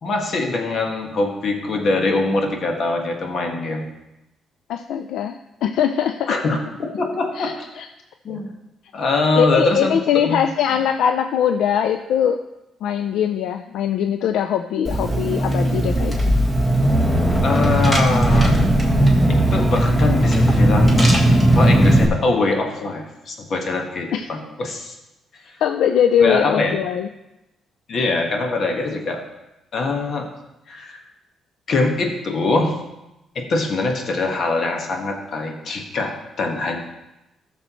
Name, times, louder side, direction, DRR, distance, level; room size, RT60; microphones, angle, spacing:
voice 1, 0.0-3.9 6.3-7.7 8.2-8.5 8.9-10.0 10.2-10.4 17.4-18.6 19.3-21.1 21.5-24.9 26.2-26.8 27.9-29.2 29.7-30.3 30.7-31.0 31.7-32.7 33.3-36.8, left 3 dB, 55° left, 2 dB, 1.6 m, -23 dB
voice 2, 4.7-6.4 7.4-7.9 9.4-12.4 12.8-16.3 24.1-24.3 25.6-27.1, left 8 dB, 80° left, 8 dB, 0.4 m, -21 dB
Car / Engine, 14.8-22.0, right 1 dB, 15° left, 1.8 m, -17 dB
13.5 x 6.6 x 3.1 m, 0.95 s
cardioid pair, 90°, 0 cm